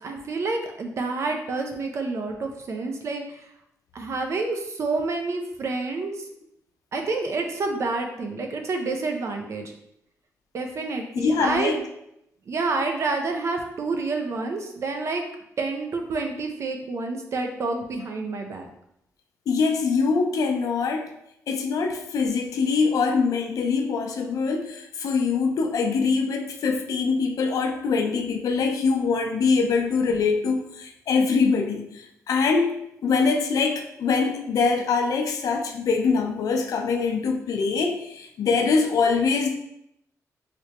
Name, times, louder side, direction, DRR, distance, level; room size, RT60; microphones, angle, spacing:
voice 1, 0.0-3.5 3.9-6.3 6.9-9.7 10.5-11.8 12.5-15.2 15.6-18.7, right 3 dB, 50° right, 4 dB, 0.5 m, -28 dB
voice 2, 11.1-11.8 19.5-21.1 21.5-32.7 33.0-39.5, left 4 dB, 75° left, 4 dB, 0.5 m, -23 dB
3.3 x 3.0 x 2.8 m, 0.78 s
cardioid pair, 110°, 6 cm